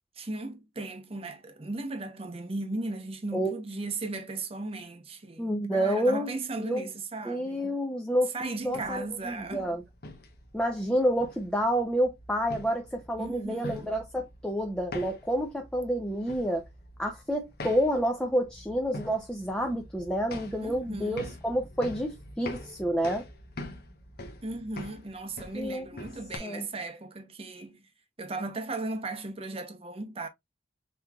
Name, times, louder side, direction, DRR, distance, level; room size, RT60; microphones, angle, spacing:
voice 1, 0.2-7.8 8.3-9.7 13.2-13.9 20.6-21.3 24.4-27.9 28.2-30.3, right 2 dB, 30° right, 0.8 m, -36 dB
voice 2, 5.4-6.9 7.2-8.3 8.6-9.8 10.5-16.7 17.0-23.3 25.5-25.9 26.4-26.7, equal, 5° left, 0.6 m, -29 dB
sound 1, 8.6-26.4, left 2 dB, 55° left, 1.0 m, -45 dB
5.6 x 3.0 x 2.3 m
head